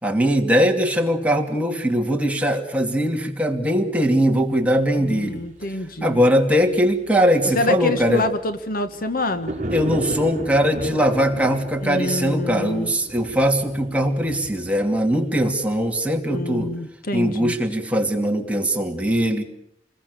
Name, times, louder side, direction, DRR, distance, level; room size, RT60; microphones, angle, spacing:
voice 1, 0.0-5.4 6.0-8.2 9.7-16.7 17.1-19.4, equal, 10° right, 2 dB, 2.6 m, -20 dB
voice 2, 5.0-6.2 7.4-9.6 11.8-12.9 16.3-17.6, left 2 dB, 55° left, 10 dB, 1.5 m, -26 dB
sound 1, 9.1-16.2, right 1 dB, 45° right, 5.8 m, -34 dB
27.5 x 21.0 x 6.9 m, 0.76 s
head